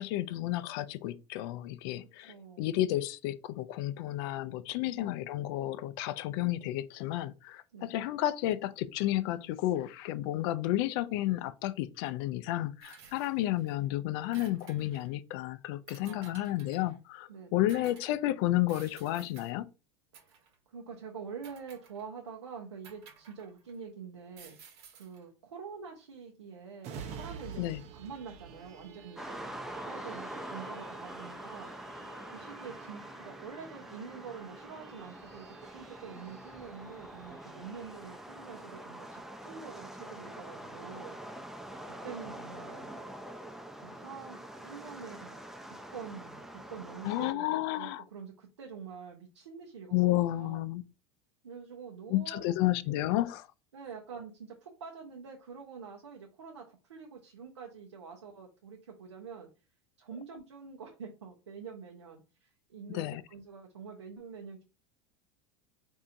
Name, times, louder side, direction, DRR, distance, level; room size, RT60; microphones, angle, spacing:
voice 1, 0.0-19.7 27.6-27.8 47.0-48.0 49.9-50.8 52.1-53.5 62.9-63.2, left 15 dB, 60° left, 0.4 m, -31 dB
voice 2, 2.2-2.7 4.9-5.1 7.7-7.9 13.0-13.1 16.0-16.6 17.3-17.8 20.1-27.7 27.9-29.5 29.8-41.5 41.9-43.1 43.8-45.4 45.9-50.6 51.4-52.6 53.7-59.5 60.0-64.6, right 6 dB, 90° right, 0.7 m, -46 dB
sound 1, 12.8-13.7 14.1-15.1 15.9-17.0 17.7-18.1 18.7-19.5 20.1-20.5 21.4-22.2 22.8-23.8 24.3-25.2, right 6 dB, 65° right, 1.1 m, -55 dB
sound 2, 26.8-40.1 40.6-40.7, right 6 dB, 50° right, 0.7 m, -51 dB
sound 3, 29.2-47.3, right 1 dB, 5° right, 0.4 m, -45 dB
4.3 x 2.7 x 2.5 m
hypercardioid pair, 90°, 14 cm